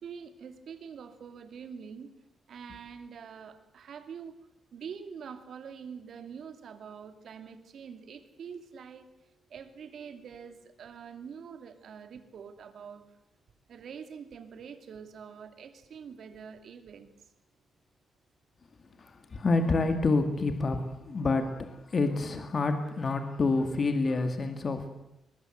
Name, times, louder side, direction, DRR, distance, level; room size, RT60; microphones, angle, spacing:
voice 1, 0.0-2.1 2.5-4.4 4.7-13.1 13.7-17.1, right 6 dB, 60° right, 2.5 m, -45 dB
voice 2, 18.8-24.9, left 3 dB, 35° left, 2.3 m, -28 dB
22.0 x 21.0 x 8.0 m
cardioid pair, 130°, 0 cm